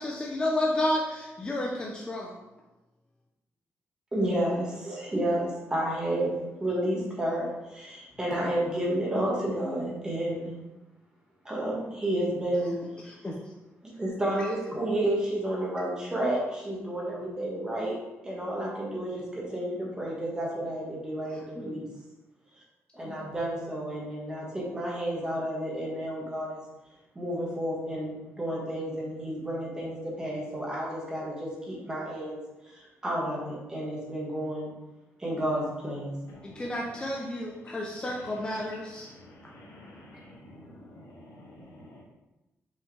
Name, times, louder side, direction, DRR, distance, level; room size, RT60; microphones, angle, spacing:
voice 1, 0.0-2.4 13.0-13.4 21.6-21.9 36.4-39.1, left 1 dB, 15° left, -2 dB, 0.6 m, -31 dB
voice 2, 4.1-6.3 6.6-10.5 11.4-12.7 13.8-18.0 18.2-21.8 22.9-26.6 27.1-32.4 32.6-34.7 35.2-36.1, right 1 dB, 15° right, -4 dB, 1.6 m, -31 dB
voice 3, 36.4-36.8 39.0-42.0, left 1 dB, 90° left, -3 dB, 1.8 m, -50 dB
5.4 x 5.3 x 3.3 m, 1.0 s
wide cardioid pair, 165°, 5 cm